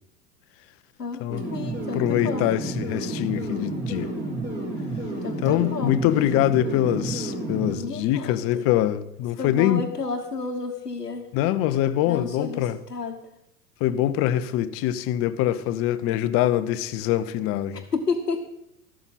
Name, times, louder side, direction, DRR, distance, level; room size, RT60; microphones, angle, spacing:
voice 1, 1.0-2.5 5.2-6.0 7.8-8.6 9.4-11.3 12.0-13.2 17.7-18.4, left 4 dB, 90° left, 1.0 m, -31 dB
sound 1, 1.3-7.7, right 2 dB, 20° right, 3.6 m, -30 dB
voice 2, 2.0-4.1 5.4-9.9 11.3-12.8 13.8-17.8, left 12 dB, 30° left, 0.6 m, -24 dB
13.0 x 12.0 x 4.1 m
figure-of-eight pair, 90°, 46 cm